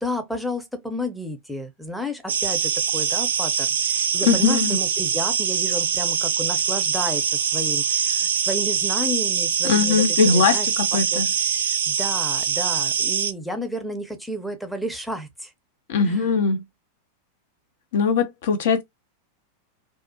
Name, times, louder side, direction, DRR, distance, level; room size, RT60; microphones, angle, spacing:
voice 1, 0.0-7.2 7.5-15.5 16.1-16.3, left 1 dB, ahead, 0.6 m, -32 dB
sound 1, 2.3-13.3, right 7 dB, 65° right, 0.4 m, -23 dB
voice 2, 4.3-4.8 9.6-11.3 15.9-16.6 17.9-18.8, left 5 dB, 55° left, 0.5 m, -20 dB
2.3 x 2.1 x 2.6 m
figure-of-eight pair, 90°, 0 cm